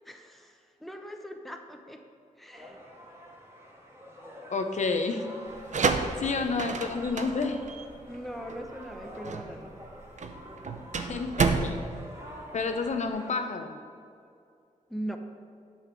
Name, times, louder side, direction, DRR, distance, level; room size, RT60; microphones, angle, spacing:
voice 1, 0.0-2.0 2.4-2.8 8.0-9.7 14.9-15.2, equal, ahead, 4 dB, 0.8 m, -40 dB
sound 1, 2.5-13.3, equal, 20° right, 1.9 m, -46 dB
voice 2, 4.5-5.2 6.2-7.6 11.0-11.8 12.5-13.8, left 4 dB, 60° left, 6 dB, 0.8 m, -30 dB
sound 2, 5.5-13.1, right 4 dB, 60° right, 0.7 m, -31 dB
8.8 x 5.7 x 6.2 m, 2.4 s
wide cardioid pair, 95°, 14 cm